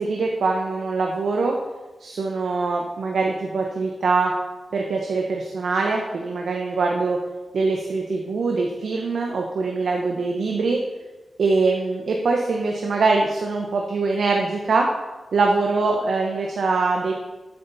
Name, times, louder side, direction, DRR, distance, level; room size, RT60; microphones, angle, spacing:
voice 1, 0.0-1.6 2.0-4.3 4.7-7.2 7.5-10.8 11.4-14.9 15.3-17.1, right 3 dB, 80° right, 1 dB, 1.1 m, -23 dB
13.0 x 9.3 x 4.2 m, 1.2 s
wide cardioid pair, 150°, 0 cm